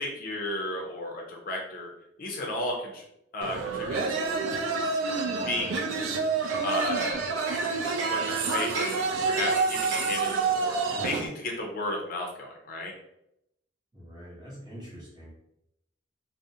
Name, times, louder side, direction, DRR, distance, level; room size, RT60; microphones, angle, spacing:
voice 1, 0.0-1.9 2.2-3.0 3.3-4.3 5.2-5.8 6.6-7.2 8.1-12.9, left 1 dB, 50° left, 0 dB, 0.5 m, -34 dB
sound 1, 3.4-11.3, right 4 dB, 90° right, 0.3 m, -28 dB
Hammer, 5.7-8.3 8.8-10.3, right 1 dB, 65° right, 0.9 m, -38 dB
voice 2, 13.9-15.3, equal, 25° right, -6 dB, 0.9 m, -44 dB
2.5 x 2.0 x 2.6 m, 0.80 s
head